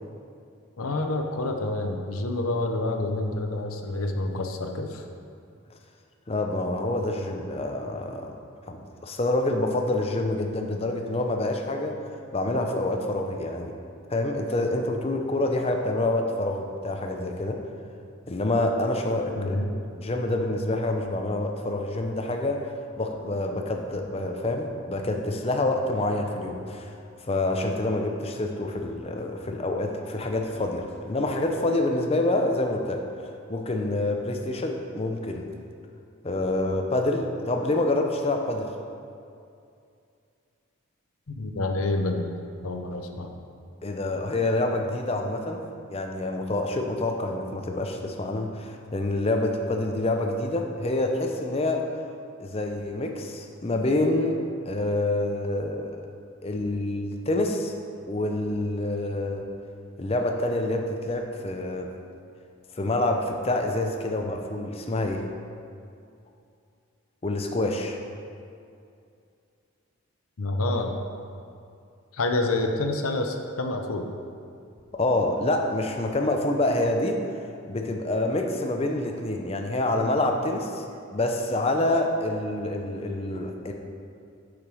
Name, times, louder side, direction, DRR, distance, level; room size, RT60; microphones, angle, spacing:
voice 1, 0.8-5.0 19.4-19.7 41.3-42.3 42.6-43.3 70.4-71.0 72.1-74.1, left 2 dB, 90° left, 4 dB, 0.8 m, -28 dB
voice 2, 6.3-8.4 8.7-12.0 12.3-13.7 14.1-17.6 18.3-19.6 19.9-26.9 27.3-33.0 33.5-35.5 36.2-38.7 43.8-51.8 52.4-56.0 56.4-57.7 58.1-59.4 60.0-61.9 62.8-65.2 67.2-68.0 74.9-77.2 77.7-80.8 81.1-83.7, left 2 dB, 30° left, 3 dB, 0.6 m, -27 dB
7.0 x 5.1 x 6.2 m, 2.5 s
head